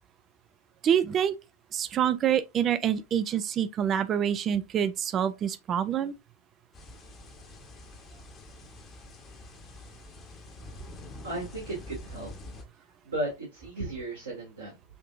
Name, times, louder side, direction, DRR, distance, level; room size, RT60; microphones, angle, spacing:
voice 1, 0.8-1.4 1.7-6.1, right 9 dB, 30° right, 0.4 m, -26 dB
sound 1, 6.7-12.6, left 2 dB, 25° left, 0.9 m, -46 dB
voice 2, 11.2-12.3 13.0-14.7, right 1 dB, 70° right, 1.7 m, -35 dB
5.7 x 2.7 x 2.4 m
figure-of-eight pair, 90°, 0 cm